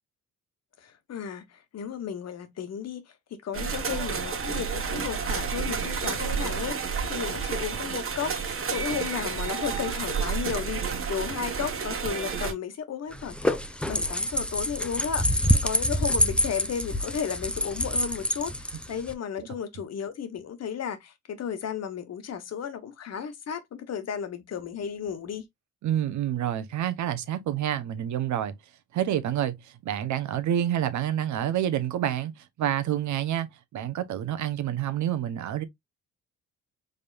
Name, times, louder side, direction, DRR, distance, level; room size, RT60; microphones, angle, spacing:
voice 1, 0.8-25.4, left 8 dB, 60° left, 1.3 m, -34 dB
sound 1, 3.5-12.5, right 6 dB, 45° right, 1.4 m, -30 dB
sound 2, 13.1-19.1, equal, 5° left, 0.6 m, -26 dB
voice 2, 25.8-28.5 28.9-35.6, right 11 dB, 70° right, 0.9 m, -28 dB
5.2 x 3.6 x 2.5 m
cardioid pair, 90°, 30 cm